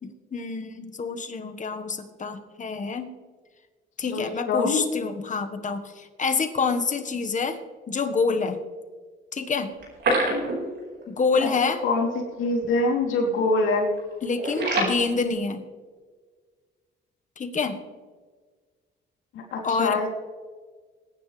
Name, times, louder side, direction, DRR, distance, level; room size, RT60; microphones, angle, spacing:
voice 1, 0.0-3.1 4.0-7.6 7.9-8.6 9.3-9.7 11.1-11.8 14.2-15.6 17.4-17.8 19.6-20.0, left 4 dB, 40° left, 6 dB, 1.5 m, -27 dB
voice 2, 4.1-4.8 11.4-11.5 11.8-12.1 12.4-13.9 19.3-20.1, left 3 dB, 90° left, 0 dB, 3.2 m, -24 dB
sound 1, 9.7-11.0 11.3-11.4 11.8-11.9 12.5-12.7 13.0-13.4 13.7-14.9, right 1 dB, 65° right, 4.9 m, -26 dB
21.5 x 10.0 x 3.4 m, 1.5 s
cardioid pair, 90°, 20 cm